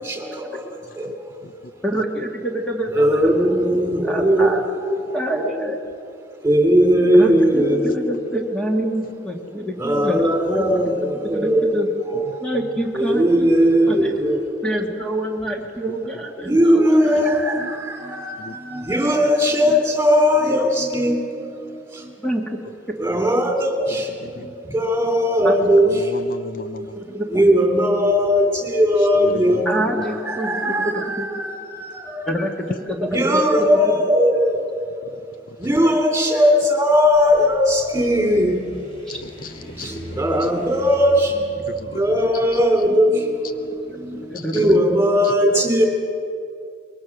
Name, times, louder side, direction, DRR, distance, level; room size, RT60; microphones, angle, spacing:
voice 1, 0.0-1.1 2.9-4.6 6.4-8.0 9.8-11.8 12.3-12.4 12.9-14.4 16.4-22.2 23.0-26.1 27.0-32.3 33.1-34.6 35.6-38.6 39.8-45.9, equal, 15° right, 2 dB, 3.2 m, -19 dB
voice 2, 1.8-3.5 4.0-5.8 7.1-10.2 10.6-10.7 11.3-13.5 13.9-14.0 14.6-17.0 22.2-22.4 25.4-25.6 26.9-27.4 29.7-31.3 32.3-33.9 39.1-39.2 44.2-45.0 45.4-45.6, right 1 dB, 5° left, 0 dB, 1.8 m, -26 dB
voice 3, 25.8-27.0 29.2-29.6 35.5-35.6 39.1-40.1 41.7-42.6 44.3-44.6 45.2-45.3, left 3 dB, 50° left, 11 dB, 0.6 m, -36 dB
sound 1, 37.0-44.2, right 1 dB, 25° left, 4.0 m, -40 dB
24.0 x 21.5 x 6.1 m, 2.5 s
head